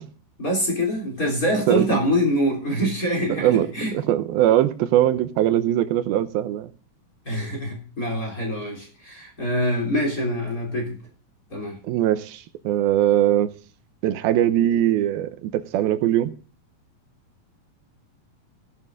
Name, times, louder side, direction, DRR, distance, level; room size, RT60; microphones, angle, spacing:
voice 1, 0.4-3.9 7.2-11.0 11.5-11.8, equal, 25° left, 3.2 m, -25 dB
voice 2, 1.7-2.0 3.3-6.7 11.8-13.5 14.0-16.3, right 12 dB, 85° right, 2.6 m, -21 dB
16.5 x 11.0 x 2.5 m
omnidirectional pair, 4.3 m